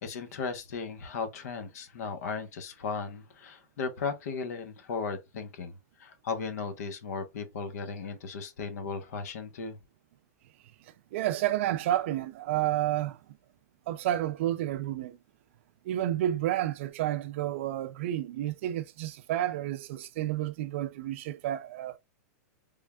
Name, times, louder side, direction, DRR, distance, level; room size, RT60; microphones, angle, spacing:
voice 1, 0.0-9.8, left 5 dB, 65° left, 0.9 m, -36 dB
voice 2, 11.1-13.2 13.9-15.2 15.9-22.0, right 13 dB, 45° right, 0.3 m, -30 dB
3.5 x 3.2 x 2.2 m
supercardioid pair, 170°, 9 cm